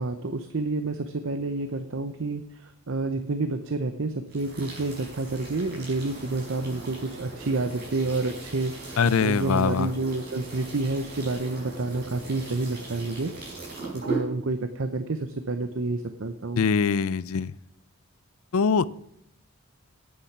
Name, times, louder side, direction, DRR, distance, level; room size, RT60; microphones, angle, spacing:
voice 1, 0.0-13.3 13.9-16.6, right 3 dB, 60° right, 9 dB, 0.7 m, -29 dB
sound 1, 4.3-14.2, right 3 dB, 45° right, 5.4 m, -39 dB
voice 2, 9.0-9.9 16.6-17.5 18.5-18.9, left 5 dB, 75° left, 18 dB, 0.5 m, -23 dB
9.9 x 8.7 x 6.0 m, 0.79 s
head